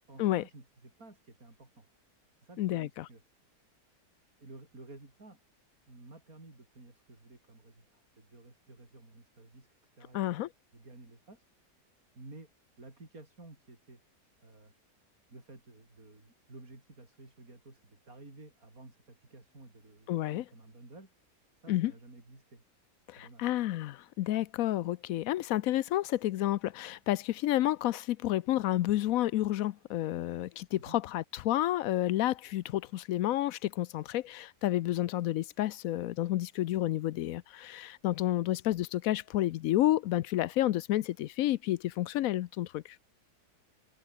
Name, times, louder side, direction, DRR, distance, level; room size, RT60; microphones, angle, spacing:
voice 1, 0.1-1.9 2.4-3.2 4.4-5.4 5.9-11.4 12.2-12.5 12.8-14.0 14.4-14.7 15.3-21.1 21.6-22.6 23.1-23.5 30.8-31.0, right 2 dB, 55° right, 5.8 m, -53 dB
voice 2, 2.6-3.1 10.1-10.5 20.1-20.4 21.7-21.9 23.1-43.0, left 14 dB, 70° left, 0.8 m, -30 dB
omnidirectional pair, 1.8 m